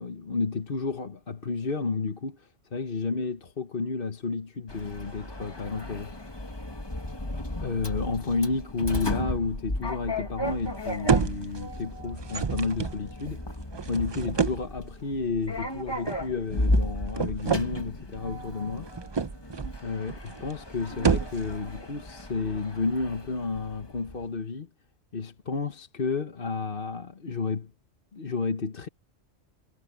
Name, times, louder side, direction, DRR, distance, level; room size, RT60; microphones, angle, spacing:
voice 1, 0.0-6.1 7.5-13.4 13.9-18.9 19.8-24.7 25.1-27.7 28.1-28.9, left 4 dB, 45° left, 1.5 m, -31 dB
Sliding door, 4.7-24.3, left 1 dB, 20° left, 1.6 m, -35 dB
sound 1, 10.4-10.8 11.1-11.8 12.2-14.8 16.1-16.3 16.6-17.7 18.8-19.8 20.1-20.6 20.9-21.6, right 5 dB, 40° right, 0.3 m, -29 dB
omnidirectional pair, 1.3 m